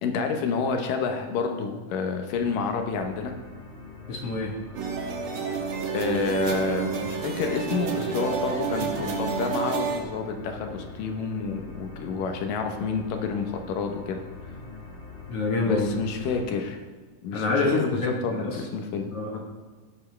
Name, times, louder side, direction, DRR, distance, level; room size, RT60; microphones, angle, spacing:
voice 1, 0.0-3.3 5.9-14.2 15.6-16.8 17.2-19.1, left 5 dB, 85° left, 4 dB, 2.8 m, -29 dB
sound 1, 2.3-16.7, left 2 dB, 30° left, 3.4 m, -44 dB
voice 2, 4.1-4.5 15.3-15.9 17.3-18.6 19.1-19.4, left 3 dB, 55° left, 0 dB, 2.1 m, -26 dB
sound 2, 4.7-10.0, right 6 dB, 55° right, 1.8 m, -29 dB
17.0 x 8.3 x 3.4 m, 1.4 s
omnidirectional pair, 3.7 m